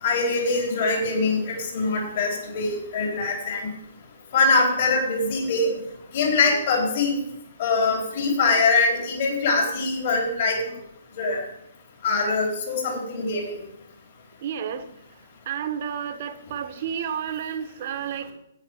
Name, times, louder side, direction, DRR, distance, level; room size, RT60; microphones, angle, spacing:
voice 1, 0.0-3.7 4.3-5.7 6.1-7.2 7.6-10.6 11.2-11.4 12.0-13.6, left 3 dB, 55° left, 0 dB, 4.1 m, -23 dB
voice 2, 14.4-14.9 15.4-18.3, right 8 dB, 50° right, 8 dB, 1.4 m, -31 dB
12.0 x 9.2 x 4.6 m, 0.79 s
hypercardioid pair, 130°, 0 cm